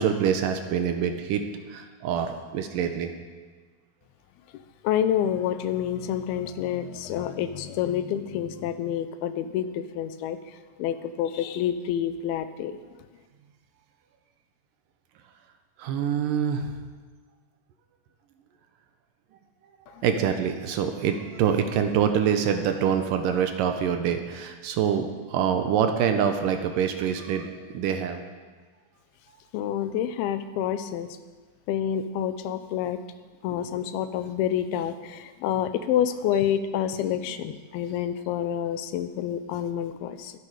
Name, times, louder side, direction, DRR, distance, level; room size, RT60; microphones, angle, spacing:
voice 1, 0.0-1.4 1.7-3.1 15.8-16.7 20.0-28.2, right 8 dB, 75° right, 6 dB, 2.2 m, -25 dB
voice 2, 4.8-10.4 10.8-12.8 20.0-20.1 29.5-31.1 31.7-33.0 33.4-40.3, left 10 dB, 90° left, 11 dB, 2.6 m, -28 dB
22.5 x 7.7 x 4.9 m, 1.4 s
omnidirectional pair, 4.3 m